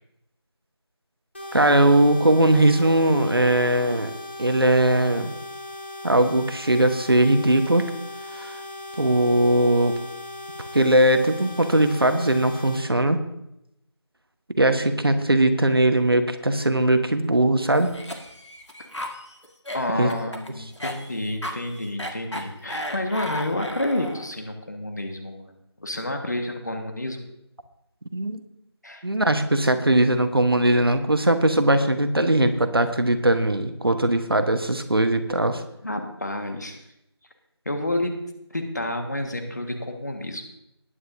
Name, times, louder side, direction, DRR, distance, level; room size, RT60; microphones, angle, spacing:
sound 1, 1.3-12.8, left 1 dB, 25° left, 1.6 m, -38 dB
voice 1, 1.5-4.1 4.4-5.3 6.0-7.9 8.3-8.5 9.0-10.0 10.7-13.2 14.6-17.9 20.0-20.1 28.1-28.4 29.0-35.6, right 1 dB, 55° right, 8 dB, 1.2 m, -20 dB
Cough, 17.7-24.3, equal, 90° left, 1.8 m, -35 dB
voice 2, 19.7-25.5 25.8-27.3 28.8-29.1 35.3-35.4 35.8-36.8 37.6-38.2 38.5-40.4, left 1 dB, 40° left, 4 dB, 1.6 m, -29 dB
19.5 x 9.4 x 2.7 m, 0.82 s
figure-of-eight pair, 170°, 14 cm